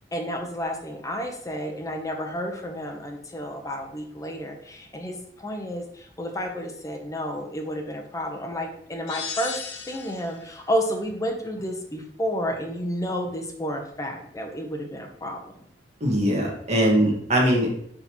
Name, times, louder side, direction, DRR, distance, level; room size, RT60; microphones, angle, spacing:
voice 1, 0.1-9.6 9.9-15.4, equal, 20° left, 3 dB, 0.9 m, -31 dB
sound 1, 9.1-10.4, left 6 dB, 90° left, 1.0 m, -35 dB
voice 2, 16.0-17.7, equal, 40° right, -2 dB, 1.8 m, -21 dB
9.5 x 3.8 x 3.1 m, 0.67 s
head